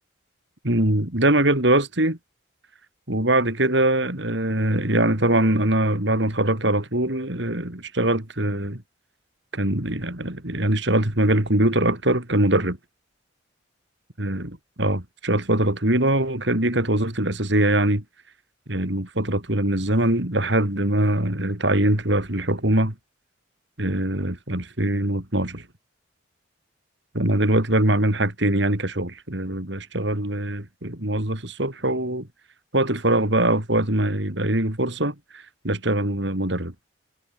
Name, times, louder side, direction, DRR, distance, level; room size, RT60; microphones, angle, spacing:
voice 1, 0.6-2.2 3.1-8.8 9.5-12.8 14.2-18.0 18.7-22.9 23.8-25.7 27.1-32.3 32.7-36.7, right 1 dB, 60° right, 3.8 m, -22 dB
head